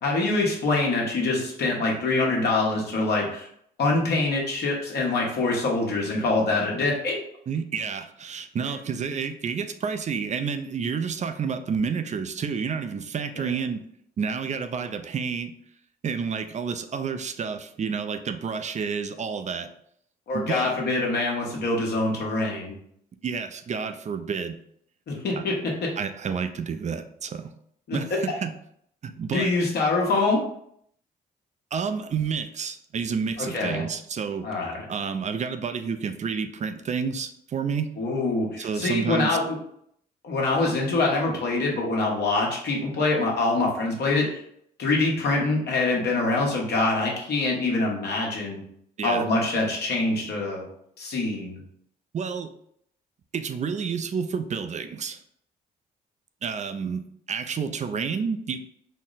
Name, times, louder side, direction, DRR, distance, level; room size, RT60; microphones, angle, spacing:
voice 1, 0.0-3.5 3.8-7.2 20.3-22.8 25.1-25.9 27.9-28.0 29.3-30.4 33.4-33.8 34.4-34.8 38.0-39.5 40.2-44.4 44.8-48.6 49.0-50.6 51.0-51.6, left 2 dB, 65° left, -2 dB, 1.3 m, -25 dB
voice 2, 7.5-13.8 14.2-15.5 16.0-19.7 20.3-20.7 23.2-24.6 25.4-25.5 26.0-27.5 27.9-28.5 29.0-29.5 31.7-34.5 34.9-37.9 38.6-39.4 49.0-49.2 52.1-52.5 53.3-55.2 56.4-58.6, right 6 dB, 40° right, 9 dB, 0.5 m, -30 dB
4.1 x 2.0 x 3.9 m, 0.69 s
supercardioid pair, 65°, 18 cm